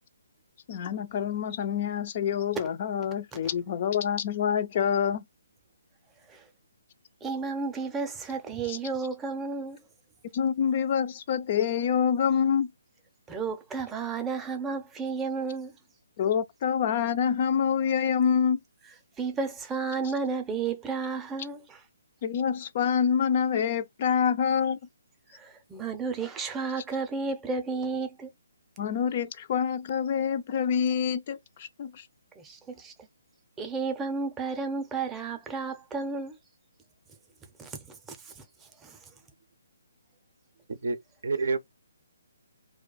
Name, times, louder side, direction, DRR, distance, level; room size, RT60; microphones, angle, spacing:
voice 1, 0.7-5.2 8.7-8.8 10.3-12.7 16.2-18.6 22.2-24.8 28.8-32.1, left 7 dB, 40° left, 0.3 m, -26 dB
voice 2, 7.2-9.8 13.3-15.8 19.1-21.8 25.3-28.3 32.4-33.1 33.6-36.4 37.6-39.1, right 4 dB, 10° right, 0.6 m, -33 dB
voice 3, 40.7-41.6, right 4 dB, 60° right, 0.5 m, -29 dB
2.4 x 2.1 x 3.9 m
figure-of-eight pair, 140°, 0 cm